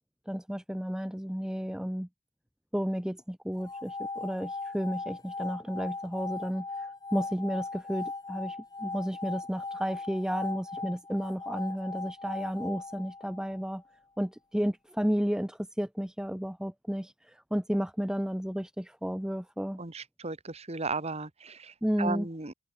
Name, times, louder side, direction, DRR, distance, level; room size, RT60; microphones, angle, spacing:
voice 1, 0.3-2.1 2.7-13.8 14.2-19.8 21.8-22.3, equal, 5° right, 0.5 m, -32 dB
sound 1, 3.6-13.7, left 3 dB, 15° left, 3.9 m, -39 dB
voice 2, 19.8-22.5, right 3 dB, 30° right, 1.4 m, -36 dB
head